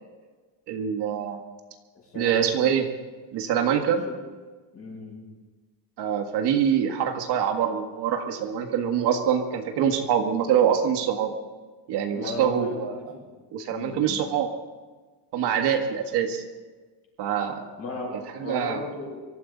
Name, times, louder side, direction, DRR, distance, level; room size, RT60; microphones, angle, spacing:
voice 1, 0.7-1.4 2.2-2.9 3.3-4.0 6.0-11.3 11.9-13.0 13.5-14.5 15.3-16.4 17.2-17.6 18.4-18.8, right 8 dB, 55° right, 4 dB, 1.8 m, -24 dB
voice 2, 1.9-2.7 4.0-4.2 4.7-5.3 12.1-13.3 13.6-14.2 17.8-19.2, left 2 dB, 30° left, -2 dB, 6.4 m, -37 dB
24.5 x 14.0 x 4.0 m, 1.4 s
cardioid pair, 170°, 47 cm